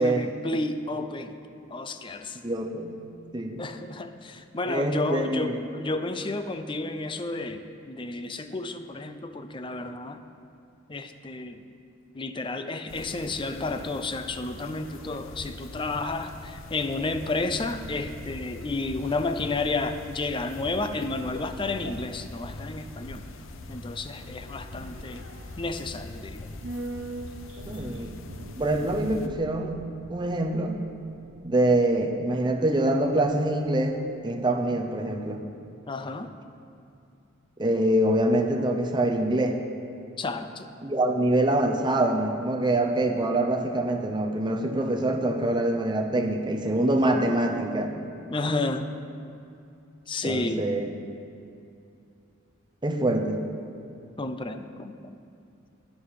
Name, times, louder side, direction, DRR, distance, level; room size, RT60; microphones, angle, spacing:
voice 1, 0.0-1.4 1.7-2.4 3.6-10.2 10.9-11.6 12.1-23.2 23.7-25.2 25.6-26.5 35.9-36.3 40.2-40.7 48.3-48.9 50.1-50.8 54.2-55.2, left 2 dB, 25° left, 9 dB, 0.5 m, -31 dB
voice 2, 2.4-3.0 3.3-3.6 4.6-5.6 27.7-28.2 28.5-29.8 30.1-30.8 31.4-34.0 34.2-35.4 37.6-39.6 40.8-48.0 50.2-50.9 52.8-53.4, right 1 dB, 20° right, 3 dB, 0.8 m, -25 dB
sound 1, 12.9-29.3, left 2 dB, 75° left, 0.7 m, -42 dB
sound 2, 23.4-33.7 34.0-34.1, right 2 dB, 65° right, 0.8 m, -44 dB
10.5 x 10.5 x 4.9 m, 2.6 s
head